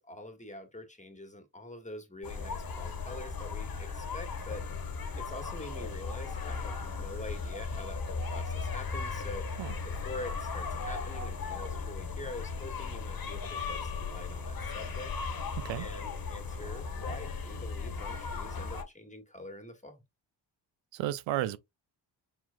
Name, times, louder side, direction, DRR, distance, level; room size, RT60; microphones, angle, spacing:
voice 1, 0.0-4.7 5.2-9.6 9.8-15.1 15.8-20.0, left 1 dB, 15° left, 1.5 m, -45 dB
sound 1, 2.2-18.8, left 4 dB, 50° left, 1.3 m, -37 dB
voice 2, 20.9-21.6, right 13 dB, 75° right, 0.5 m, -32 dB
4.6 x 3.9 x 2.2 m
supercardioid pair, 50°, 45 cm